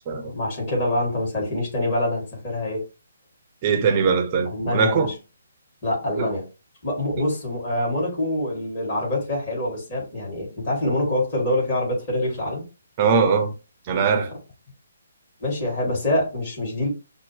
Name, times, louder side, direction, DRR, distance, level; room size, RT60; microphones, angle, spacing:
voice 1, 0.1-2.8 4.4-5.1 5.8-6.4 6.8-12.6 15.4-16.9, left 1 dB, 30° left, 2.5 m, -25 dB
voice 2, 3.6-5.1 6.2-6.3 7.2-7.3 13.0-13.5 13.9-14.3, right 5 dB, 25° right, 0.7 m, -21 dB
5.7 x 2.2 x 3.2 m
figure-of-eight pair, 135°, 0 cm